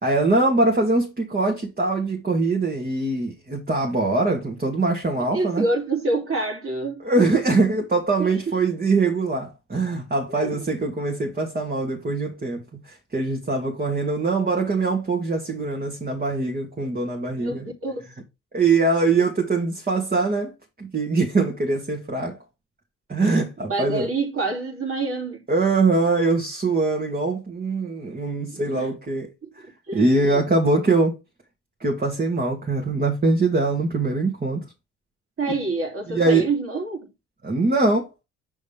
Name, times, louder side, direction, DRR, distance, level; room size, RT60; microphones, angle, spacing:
voice 1, 0.0-5.6 7.0-17.7 18.5-20.5 20.8-22.4 23.1-24.1 25.5-29.7 29.9-31.2 31.8-34.6 36.1-36.5 37.4-38.1, right 3 dB, 30° right, 2.5 m, -22 dB
voice 2, 5.1-7.0 8.2-8.5 10.3-10.6 17.4-18.1 23.7-25.4 28.5-28.9 29.6-30.4 35.4-37.1, right 3 dB, 45° right, 3.0 m, -27 dB
6.1 x 5.8 x 3.5 m
hypercardioid pair, 55°, 31 cm